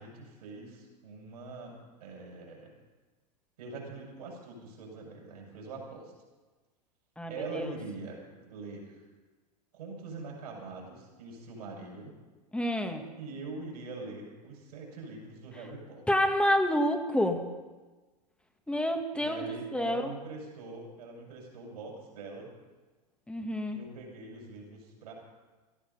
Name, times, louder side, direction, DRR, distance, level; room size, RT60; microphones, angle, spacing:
voice 1, 0.0-2.7 3.6-6.1 7.3-9.0 9.7-12.2 13.2-16.0 19.1-22.5 23.7-25.1, right 3 dB, 70° right, -1 dB, 6.5 m, -43 dB
voice 2, 7.2-7.7 12.5-13.0 16.1-17.4 18.7-20.0 23.3-23.8, equal, 5° left, 5 dB, 1.9 m, -28 dB
17.5 x 13.5 x 5.5 m, 1.3 s
hypercardioid pair, 100°, 21 cm